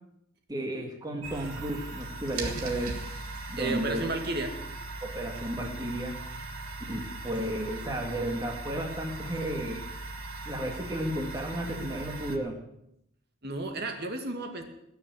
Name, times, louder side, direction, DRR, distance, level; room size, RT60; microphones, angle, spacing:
voice 1, 0.5-3.0 3.5-4.1 5.0-6.2 6.8-9.9 10.5-12.6, right 1 dB, 20° right, 1 dB, 1.9 m, -33 dB
sound 1, 1.2-12.4, right 2 dB, 85° right, 2.6 m, -39 dB
voice 2, 3.6-4.6 13.4-14.6, right 2 dB, 50° right, 4 dB, 2.2 m, -32 dB
20.5 x 7.1 x 9.3 m, 0.79 s
head